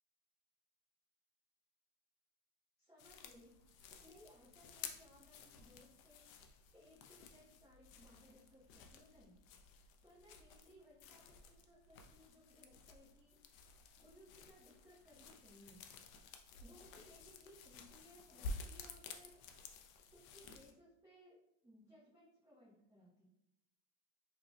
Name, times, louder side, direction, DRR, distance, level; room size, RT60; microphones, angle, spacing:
voice 1, 2.8-6.2 6.7-9.4 9.7-15.8 16.6-19.4 19.7-21.4 21.6-23.3, equal, 5° right, -11 dB, 0.9 m, -64 dB
sound 1, 3.0-20.7, left 3 dB, 80° left, 0.7 m, -53 dB
4.9 x 3.0 x 2.2 m, 0.85 s
supercardioid pair, 135°, 40 cm